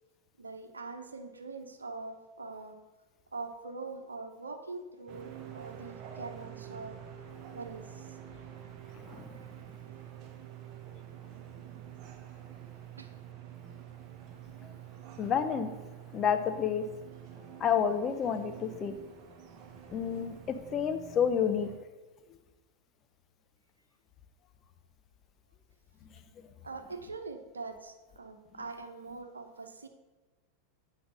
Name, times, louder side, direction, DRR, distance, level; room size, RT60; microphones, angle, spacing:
voice 1, 0.4-2.8 3.3-7.0 7.5-8.2 13.0-13.1 26.6-29.9, right 3 dB, 85° right, 7 dB, 1.0 m, -43 dB
sound 1, 5.1-21.8, right 9 dB, 45° right, 1.4 m, -48 dB
voice 2, 15.2-15.7 16.1-16.8 17.6-19.0 19.9-21.7, left 7 dB, 35° left, 8 dB, 1.0 m, -29 dB
8.8 x 5.9 x 6.7 m, 1.2 s
figure-of-eight pair, 90°, 0 cm